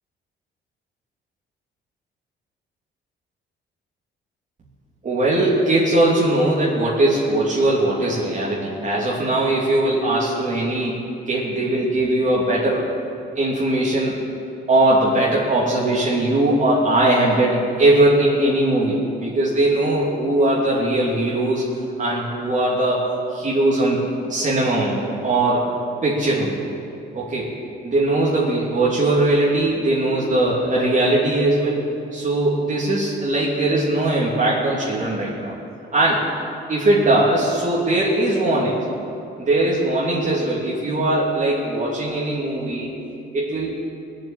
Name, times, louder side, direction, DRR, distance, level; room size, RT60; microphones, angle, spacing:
voice 1, 5.0-11.0 11.3-12.9 13.4-14.3 14.7-21.6 22.0-23.0 23.3-24.0 24.3-25.7 26.0-26.6 27.1-27.5 27.8-31.9 32.1-35.6 35.9-36.3 36.7-38.8 39.4-42.9 43.3-43.7, right 1 dB, 40° right, -5 dB, 2.9 m, -20 dB
19.5 x 7.6 x 9.0 m, 2.6 s
cardioid pair, 90°, 20 cm